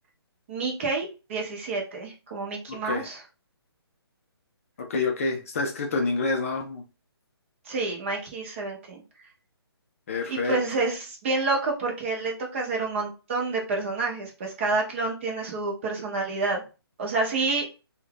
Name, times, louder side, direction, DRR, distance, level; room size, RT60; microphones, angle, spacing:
voice 1, 0.5-3.2 7.6-9.0 10.3-16.6 17.0-17.7, right 3 dB, 30° right, 0 dB, 0.8 m, -28 dB
voice 2, 2.7-3.1 4.8-6.8 10.1-10.6, left 3 dB, 30° left, 3 dB, 0.5 m, -28 dB
2.6 x 2.4 x 3.3 m, 0.31 s
hypercardioid pair, 160°, 14 cm